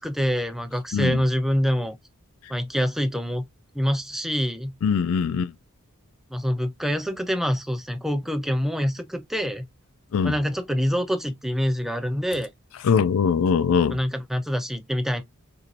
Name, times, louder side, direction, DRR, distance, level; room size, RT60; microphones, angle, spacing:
voice 1, 0.0-2.0 2.5-3.4 3.7-4.7 6.3-9.6 10.2-12.5 13.9-15.2, equal, ahead, 0.5 m, -25 dB
voice 2, 4.8-5.5 10.1-10.3 12.8-14.0, left 6 dB, 65° left, 0.3 m, -21 dB
4.4 x 2.7 x 2.5 m
head